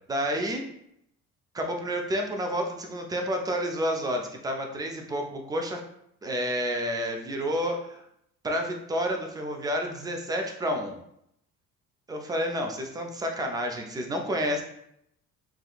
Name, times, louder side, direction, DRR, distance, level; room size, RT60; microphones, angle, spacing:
voice 1, 0.1-0.6 1.5-5.8 6.2-8.0 8.4-11.0 12.1-14.6, equal, 10° right, 3 dB, 0.3 m, -30 dB
3.4 x 2.3 x 2.3 m, 0.75 s
figure-of-eight pair, 50°, 44 cm